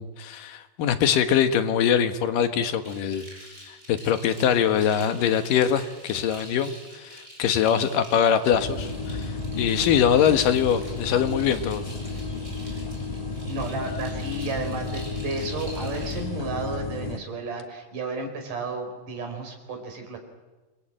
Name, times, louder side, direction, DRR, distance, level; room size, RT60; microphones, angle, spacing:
voice 1, 0.0-3.2 3.7-11.8, left 8 dB, 85° left, 8 dB, 3.0 m, -23 dB
sound 1, 2.8-16.2, equal, 20° right, 8.0 m, -46 dB
sound 2, 8.5-17.2, left 3 dB, 50° left, 0.4 m, -32 dB
voice 2, 13.5-20.2, right 3 dB, 75° right, 5 dB, 5.6 m, -33 dB
27.5 x 21.5 x 8.9 m, 1.2 s
omnidirectional pair, 3.8 m